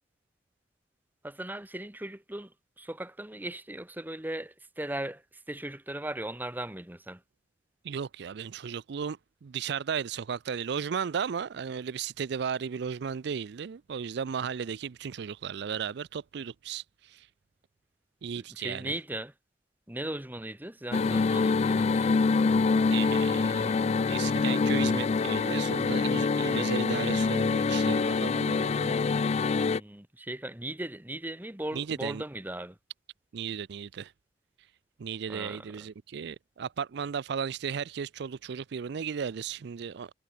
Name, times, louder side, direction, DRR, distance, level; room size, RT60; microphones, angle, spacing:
voice 1, 1.2-5.2 5.5-7.2 18.3-19.3 19.9-22.1 29.7-32.8 35.3-35.7, right 1 dB, 10° right, 1.3 m, -38 dB
voice 2, 7.8-17.3 18.2-18.9 22.9-29.0 31.7-32.2 33.3-34.1 35.0-40.1, right 7 dB, 65° right, 0.4 m, -35 dB
sound 1, 20.9-29.8, left 4 dB, 35° left, 0.4 m, -25 dB
head